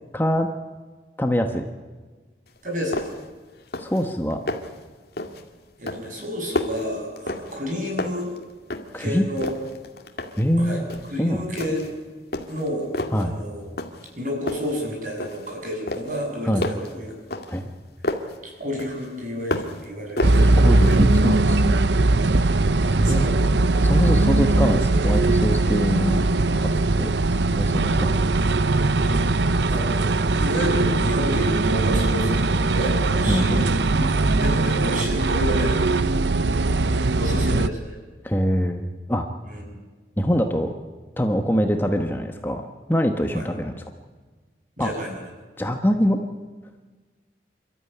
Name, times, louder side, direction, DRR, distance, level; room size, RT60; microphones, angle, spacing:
voice 1, 0.1-0.5 1.2-1.6 3.8-4.4 8.9-9.2 10.4-10.9 11.2-11.5 13.1-13.3 16.4-16.6 17.5-17.7 20.4-21.8 22.5-22.6 22.9-23.3 23.8-26.2 26.6-26.7 27.0-27.1 27.6-28.1 33.3-33.8 38.2-39.2 40.2-40.7 41.2-43.7 44.8-44.9 45.6-46.2, equal, 10° left, 4 dB, 1.2 m, -24 dB
sound 1, 2.5-2.6 2.9-3.3 3.6-4.0 4.3-4.8 5.2-5.5 5.9-7.7 8.0-9.1 9.4-10.5 10.9-11.2 11.6-12.0 12.3-13.3 13.8-14.2 14.5-15.5 15.9-18.4 18.8-19.9 20.2-21.2, left 1 dB, 55° left, 2.2 m, -31 dB
voice 2, 2.6-3.1 5.8-8.3 9.0-9.5 10.6-10.8 11.1-11.8 12.5-12.9 13.2-13.6 14.2-17.1 18.4-20.7 23.0-23.3 29.0-29.3 29.7-35.8 36.8-38.0 39.4-39.6 43.3-43.4 44.8-45.2, equal, 45° right, 0 dB, 7.4 m, -30 dB
sound 2, 20.2-37.7, right 2 dB, 75° right, 0.7 m, -20 dB
28.5 x 13.5 x 9.9 m, 1.4 s
head